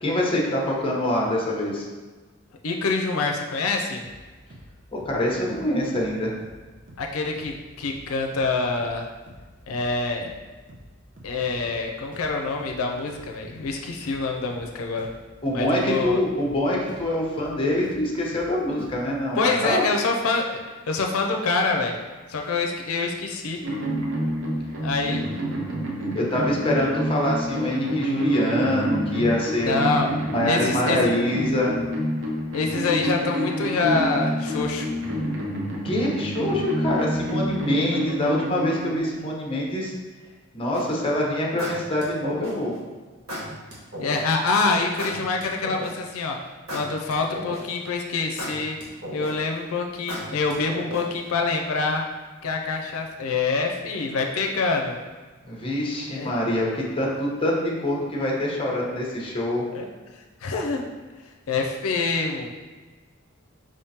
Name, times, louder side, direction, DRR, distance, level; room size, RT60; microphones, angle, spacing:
voice 1, 0.0-1.9 4.9-6.3 15.4-19.8 26.1-30.0 30.3-31.7 35.8-39.9 40.5-42.7 55.4-59.7, left 1 dB, 25° left, -2 dB, 0.9 m, -25 dB
voice 2, 2.6-4.0 7.0-9.1 9.7-10.3 11.2-15.1 15.5-16.2 19.4-20.6 20.9-22.0 22.3-23.6 24.8-25.2 29.6-30.1 30.4-31.1 32.5-34.9 44.0-46.4 46.7-48.8 49.1-52.1 52.4-55.0 56.1-56.3 59.7-59.9 60.4-60.8 61.5-62.5, left 3 dB, 90° left, 2 dB, 0.5 m, -26 dB
sound 1, 4.0-4.2 4.5-4.7 5.0-5.2 5.5-5.7 5.9-6.1 6.4-6.6 6.9-7.1 7.4-7.6 7.8-8.1 8.3-8.5 8.8-9.0 9.3-9.5 9.7-10.0 10.2-10.4 10.7-10.9 11.2-11.9 12.1-12.3 12.6-12.8 13.1-13.3 13.5-13.8 14.0-14.2 14.5-14.7 15.0-15.2 15.5-15.7 15.9-16.1 16.4-16.6 16.9-17.1 17.4-17.6 17.8-18.0 18.3-18.5 18.8-19.0, equal, 40° right, 0.8 m, -46 dB
sound 2, 23.6-39.0, equal, 65° right, 0.9 m, -28 dB
sound 3, 40.7-41.0 41.6-42.7 43.3-44.2 45.0-46.1 46.7-47.8 48.4-49.5 50.1-51.2, equal, 80° right, 1.3 m, -34 dB
5.1 x 3.5 x 2.8 m, 1.3 s
head